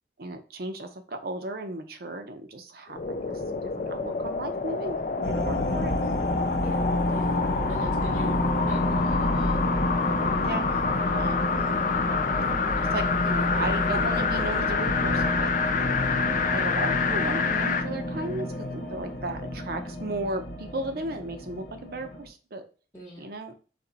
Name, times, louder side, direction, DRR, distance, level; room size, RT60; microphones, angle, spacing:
voice 1, 0.2-5.9 10.4-10.8 11.1-11.6 12.9-15.5 16.4-22.6 23.2-23.5, right 2 dB, 55° right, 7 dB, 0.7 m, -35 dB
sound 1, 2.9-17.9 18.3-18.4, left 5 dB, 45° left, 0.4 m, -28 dB
sound 2, 5.2-22.3, left 1 dB, 60° left, 0.8 m, -29 dB
voice 2, 6.6-7.4 7.7-8.4 8.7-9.6 22.9-23.3, equal, 15° left, -6 dB, 0.9 m, -42 dB
4.3 x 3.1 x 4.0 m, 0.36 s
head